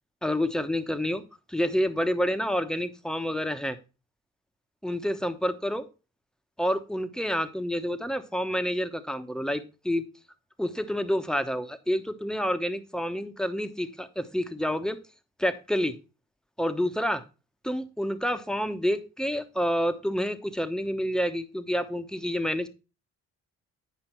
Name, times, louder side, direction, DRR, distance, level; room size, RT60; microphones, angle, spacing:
voice 1, 0.2-1.2 1.5-3.8 4.8-5.8 6.6-10.0 10.6-15.0 15.4-15.9 16.6-17.2 17.6-22.7, equal, ahead, 8 dB, 0.9 m, -28 dB
9.0 x 5.2 x 4.4 m, 0.31 s
cardioid pair, 90°, 30 cm